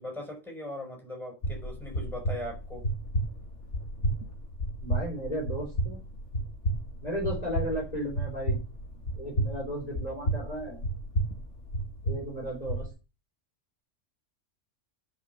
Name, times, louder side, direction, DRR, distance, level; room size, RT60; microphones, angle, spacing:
voice 1, 0.0-2.9, left 1 dB, ahead, 1 dB, 5.5 m, -39 dB
sound 1, 1.4-12.9, right 1 dB, 70° left, 2.0 m, -32 dB
voice 2, 4.8-6.0 7.0-8.6 9.2-10.8 12.0-12.9, equal, 30° left, -2 dB, 3.6 m, -34 dB
9.9 x 6.0 x 6.9 m, 0.30 s
omnidirectional pair, 1.3 m